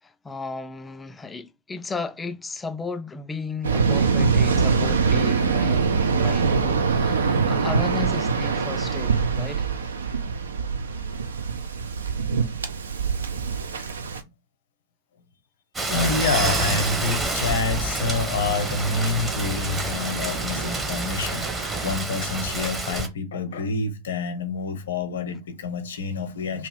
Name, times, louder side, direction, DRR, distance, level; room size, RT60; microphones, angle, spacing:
voice 1, 0.0-9.7, left 4 dB, 15° left, 0.4 m, -34 dB
Waves surf, 3.6-14.2, right 5 dB, 70° right, 0.4 m, -23 dB
Rain, 15.7-23.1, right 2 dB, 15° right, 0.8 m, -29 dB
voice 2, 15.9-26.7, left 4 dB, 65° left, 0.7 m, -27 dB
sound 1, 15.9-22.0, right 3 dB, 30° right, 1.1 m, -31 dB
2.8 x 2.4 x 3.5 m
figure-of-eight pair, 90°, 0 cm